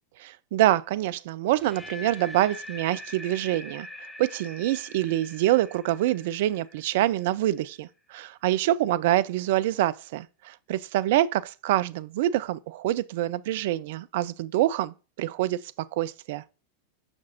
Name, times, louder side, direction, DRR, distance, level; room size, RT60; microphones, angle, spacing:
voice 1, 0.2-3.9 4.2-15.6 15.9-16.4, right 14 dB, 50° right, 0.3 m, -26 dB
sound 1, 1.5-7.5, left 1 dB, 5° left, 0.6 m, -43 dB
6.5 x 5.8 x 2.8 m
figure-of-eight pair, 90°, 0 cm